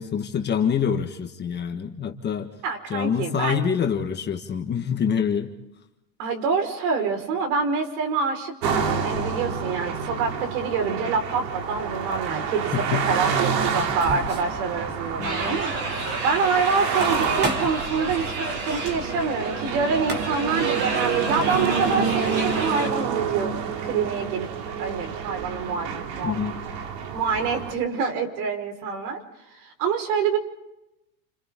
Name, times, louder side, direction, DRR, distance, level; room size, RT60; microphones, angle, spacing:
voice 1, 0.0-2.5 2.9-5.5 12.7-13.1 15.2-15.6 26.2-26.6, left 7 dB, 20° left, 4 dB, 1.6 m, -26 dB
voice 2, 2.6-3.6 6.2-15.7 16.2-24.5 24.8-25.9 26.1-26.3 27.1-29.2 29.5-30.4, right 5 dB, 65° right, 5 dB, 5.2 m, -26 dB
sound 1, 8.6-27.7, right 6 dB, 90° right, 3.1 m, -28 dB
sound 2, 13.2-14.6 14.9-15.0 15.3-15.4 16.8-17.9 19.7-19.8 20.0-20.6, equal, 20° right, 3.0 m, -32 dB
sound 3, 15.2-22.9, right 3 dB, 35° right, 5.0 m, -31 dB
29.5 x 27.5 x 3.8 m, 0.93 s
supercardioid pair, 150°, 48 cm